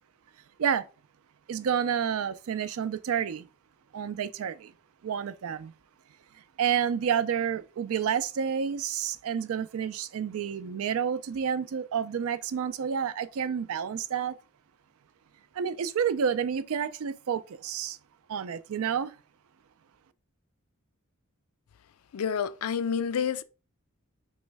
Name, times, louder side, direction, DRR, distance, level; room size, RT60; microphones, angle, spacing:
voice 1, 1.5-3.5 3.9-4.7 5.0-5.7 6.6-14.4 15.5-18.0 18.3-19.1, right 7 dB, 70° right, 0.4 m, -29 dB
voice 2, 22.1-23.4, left 7 dB, 70° left, 0.4 m, -29 dB
3.1 x 3.1 x 4.6 m
head